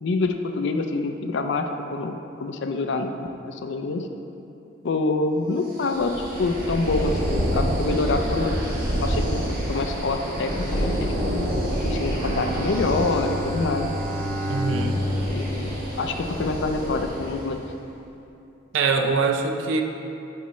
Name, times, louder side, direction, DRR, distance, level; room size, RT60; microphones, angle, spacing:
voice 1, 0.0-3.1 3.5-4.1 4.8-6.1 6.4-8.6 9.0-11.1 11.8-13.9 15.3-17.6, left 3 dB, 60° left, 6 dB, 0.5 m, -26 dB
sound 1, 5.8-17.5, equal, 45° right, 1.3 m, -28 dB
Bowed string instrument, 12.2-16.6, equal, 30° right, 1.3 m, -30 dB
voice 2, 14.5-15.0 18.7-19.8, right 4 dB, 70° right, 3 dB, 0.5 m, -23 dB
8.2 x 5.3 x 3.1 m, 2.8 s
head